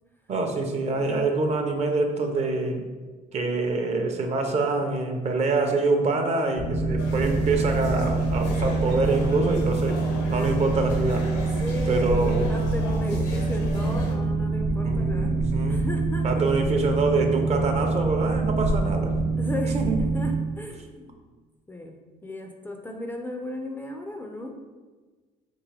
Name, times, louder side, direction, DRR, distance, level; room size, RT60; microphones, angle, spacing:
voice 1, 0.3-2.9 3.3-10.0 10.3-11.6 11.9-12.5 13.1-13.2 14.8-15.9 16.2-19.2 19.7-20.0, right 3 dB, 40° right, 4 dB, 0.6 m, -25 dB
Boat Water vehicle, 6.6-20.4, right 3 dB, 70° right, 0.9 m, -25 dB
sound 1, 7.0-14.2, left 1 dB, 80° left, 0.8 m, -36 dB
voice 2, 10.2-10.7 11.6-15.4 15.6-16.3 19.4-21.2 21.7-24.6, left 1 dB, 10° left, 2 dB, 0.4 m, -36 dB
3.7 x 3.0 x 3.3 m, 1.3 s
cardioid pair, 110°, 17 cm